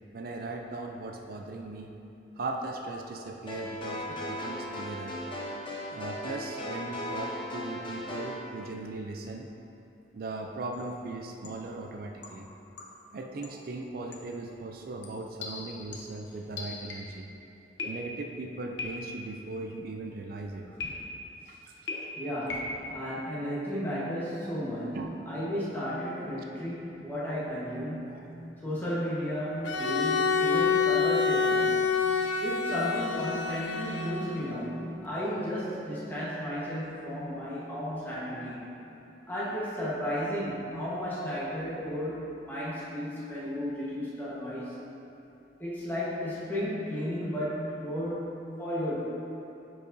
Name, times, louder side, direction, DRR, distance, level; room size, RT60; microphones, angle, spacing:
voice 1, 0.1-1.9 2.4-5.1 5.9-9.5 10.1-12.5 13.1-17.3 17.8-20.6 21.5-21.7 24.9-25.1 28.1-28.2, right 2 dB, 50° right, 2 dB, 0.4 m, -38 dB
sound 1, 3.5-8.4, left 1 dB, 25° left, 0.7 m, -37 dB
sound 2, 10.7-11.0 11.4-11.8 12.2-13.1 13.4-13.7 14.1-14.4 15.0-17.3 17.8-18.4 18.8-19.3 20.8-21.4 21.9-22.9, left 2 dB, 70° left, 0.8 m, -40 dB
voice 2, 21.9-31.8 32.4-38.7 39.3-44.8 45.6-49.1, equal, 10° left, -8 dB, 1.2 m, -34 dB
Bowed string instrument, 29.6-34.6, left 5 dB, 90° left, 0.5 m, -27 dB
9.6 x 4.8 x 2.6 m, 2.8 s
head